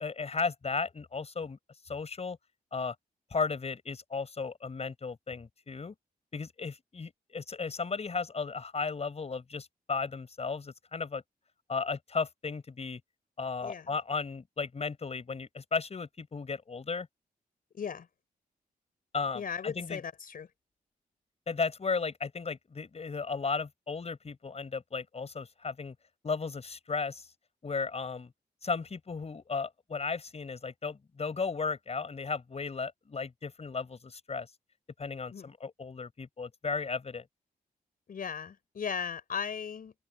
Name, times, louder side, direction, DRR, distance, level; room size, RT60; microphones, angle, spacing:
voice 1, 0.0-1.6 1.9-2.4 2.7-2.9 3.3-5.9 6.3-11.2 11.7-13.0 13.4-17.1 19.1-20.0 21.5-25.9 26.2-27.3 27.6-28.3 28.6-34.5 35.0-37.2, left 4 dB, 45° left, 5.6 m, -35 dB
voice 2, 17.7-18.1 19.3-20.5 35.3-35.5 38.1-39.9, left 7 dB, 65° left, 5.1 m, -37 dB
open air
cardioid pair, 85°, 16 cm